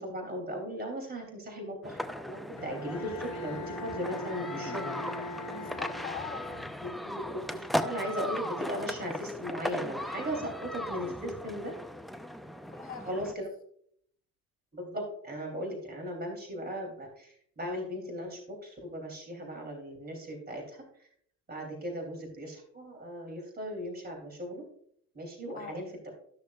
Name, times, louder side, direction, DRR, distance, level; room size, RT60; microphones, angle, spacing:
voice 1, 0.0-4.8 6.8-11.7 13.1-13.4 14.7-20.8 21.5-24.6 25.1-26.1, equal, 20° right, 1 dB, 3.1 m, -37 dB
sound 1, 1.8-13.3, equal, ahead, 0.4 m, -37 dB
Bowed string instrument, 2.6-7.1, left 2 dB, 45° left, 1.6 m, -41 dB
voice 2, 5.5-6.5 12.7-13.4 25.5-25.8, left 7 dB, 20° left, 1 dB, 3.1 m, -43 dB
13.0 x 6.4 x 2.4 m, 0.67 s
supercardioid pair, 90°, 43 cm